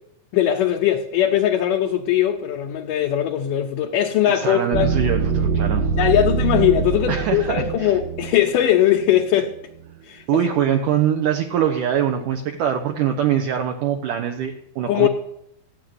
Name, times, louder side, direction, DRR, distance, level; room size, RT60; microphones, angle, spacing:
voice 1, 0.3-4.9 6.0-9.5 10.0-10.5 14.9-15.1, left 11 dB, 70° left, 1 dB, 2.2 m, -20 dB
voice 2, 4.3-5.9 7.1-8.0 10.3-15.1, right 9 dB, 70° right, 4 dB, 2.2 m, -23 dB
sound 1, 4.7-9.3, right 5 dB, 90° right, 2.8 m, -23 dB
15.0 x 8.8 x 9.5 m, 0.80 s
omnidirectional pair, 4.5 m